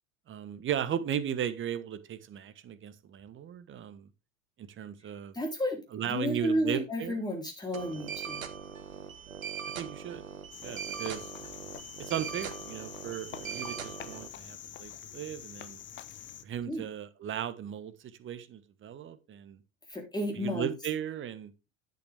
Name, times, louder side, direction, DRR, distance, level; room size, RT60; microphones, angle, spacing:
voice 1, 0.3-4.1 4.6-5.4 5.9-7.2 9.8-10.2 10.6-11.3 12.0-15.8 16.4-17.9 18.2-19.6 20.3-21.5, right 9 dB, 30° right, 1.3 m, -36 dB
voice 2, 5.3-5.8 6.1-8.4 16.7-16.8 19.9-20.7, equal, 10° left, 3.7 m, -32 dB
sound 1, 7.7-14.3, right 7 dB, 75° right, 1.4 m, -41 dB
Cricket, 10.5-16.4, left 10 dB, 30° left, 1.0 m, -46 dB
10.5 x 8.4 x 3.5 m
figure-of-eight pair, 80°, 41 cm